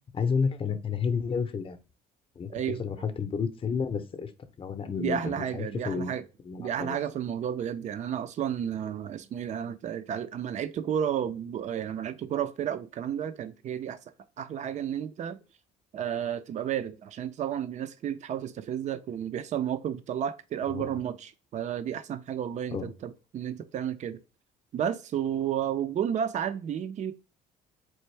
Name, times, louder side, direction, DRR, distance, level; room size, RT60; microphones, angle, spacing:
voice 1, 0.1-1.8 2.3-4.3 4.6-6.2 6.4-7.0 20.7-21.0 22.7-22.9, left 5 dB, 30° left, 0.7 m, -31 dB
voice 2, 5.0-6.2 6.6-14.0 14.4-15.4 15.9-24.2 24.7-27.1, right 9 dB, 45° right, 0.5 m, -32 dB
4.5 x 2.5 x 3.2 m
cardioid pair, 110°, 17 cm